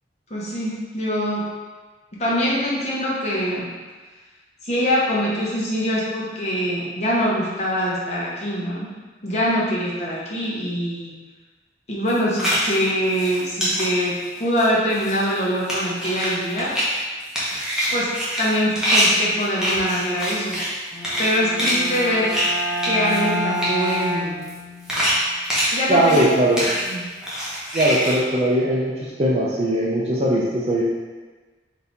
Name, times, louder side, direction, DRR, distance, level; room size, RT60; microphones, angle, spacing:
voice 1, 0.3-1.5 2.2-3.7 4.6-8.9 9.2-11.1 11.9-16.7 17.9-20.6 21.2-22.4 22.8-24.5 25.7-26.3 26.9-27.0, equal, 40° left, -6 dB, 0.9 m, -23 dB
sound 1, 12.1-12.8 13.1-13.9 14.3-14.6 14.9-15.4 15.7-16.3 16.6-16.9 17.2-20.8 21.0-21.3 21.6-22.5 22.8-23.3 23.5-24.0 24.4-24.6 24.9-26.3 26.6-26.9 27.2-28.2, equal, 5° right, 0.9 m, -24 dB
Bowed string instrument, 20.9-25.0, equal, 85° left, 1.3 m, -28 dB
voice 2, 25.9-26.6 27.7-30.8, right 1 dB, 35° right, -5 dB, 0.5 m, -20 dB
3.9 x 2.8 x 3.4 m, 1.3 s
head